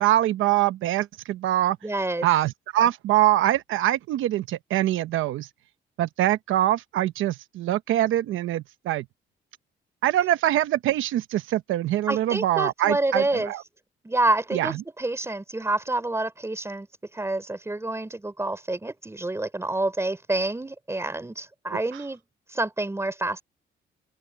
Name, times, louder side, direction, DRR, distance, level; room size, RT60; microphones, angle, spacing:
voice 1, 0.0-1.8 2.2-5.5 6.0-9.0 10.0-13.6 14.5-14.8 21.9-22.0, right 13 dB, 85° right, 1.0 m, -24 dB
voice 2, 1.8-2.3 12.1-13.5 14.0-16.9 17.1-22.2 22.5-23.4, right 2 dB, 15° right, 3.3 m, -28 dB
cardioid pair, 90°, 20 cm